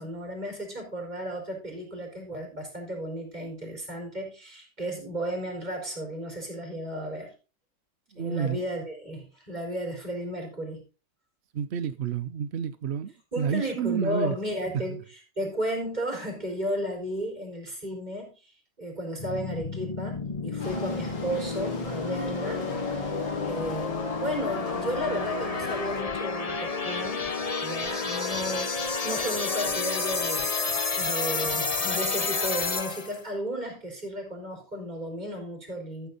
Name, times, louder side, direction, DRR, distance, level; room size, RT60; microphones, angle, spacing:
voice 1, 0.0-7.3 8.1-10.8 13.3-15.0 15.4-18.5 18.8-22.7 23.5-27.3 27.6-30.5 31.0-36.1, equal, 25° right, 4.6 m, -34 dB
voice 2, 8.1-8.6 11.5-14.4 14.9-15.0, right 7 dB, 70° right, 0.6 m, -30 dB
sound 1, 19.2-33.2, left 4 dB, 30° left, 0.7 m, -30 dB
sound 2, 20.6-26.0, left 3 dB, 80° left, 2.5 m, -39 dB
13.5 x 7.2 x 4.0 m
omnidirectional pair, 1.9 m